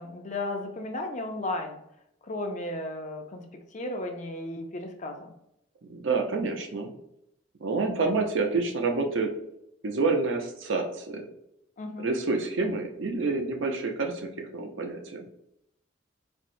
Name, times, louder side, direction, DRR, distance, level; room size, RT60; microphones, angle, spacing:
voice 1, 0.0-1.8 2.2-3.5 3.7-5.3 11.8-12.1, left 2 dB, 35° left, 4 dB, 0.4 m, -34 dB
voice 2, 5.8-6.9 7.6-9.3 9.8-11.3 12.0-15.3, right 3 dB, 70° right, 3 dB, 0.6 m, -28 dB
4.3 x 2.0 x 2.6 m, 0.80 s
head